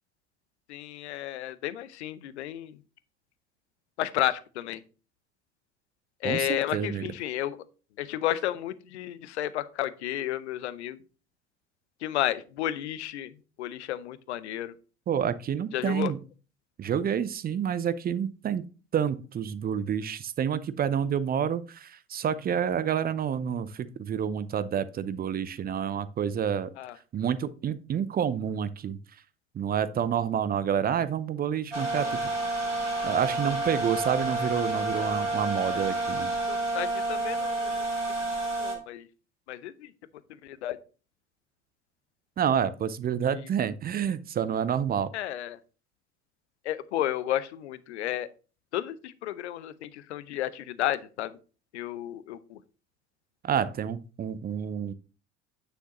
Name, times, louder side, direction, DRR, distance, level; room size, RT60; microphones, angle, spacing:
voice 1, 0.7-2.8 4.0-4.8 6.2-7.6 8.0-11.0 12.0-13.3 13.6-14.7 15.7-16.1 26.8-27.0 36.5-37.9 38.6-39.1 39.5-39.9 40.3-40.8 43.3-43.4 45.1-45.6 46.6-48.3 48.7-51.4 51.7-52.6, left 13 dB, 70° left, 16 dB, 0.8 m, -32 dB
voice 2, 6.2-7.1 15.1-16.2 16.8-18.6 18.9-26.7 27.1-29.0 29.5-32.3 33.0-36.3 42.4-45.1 53.4-54.9, right 8 dB, 25° right, 16 dB, 0.6 m, -28 dB
sound 1, 31.7-38.8, right 2 dB, 90° right, 1.9 m, -29 dB
9.3 x 6.7 x 3.0 m, 0.35 s
figure-of-eight pair, 60°, 36 cm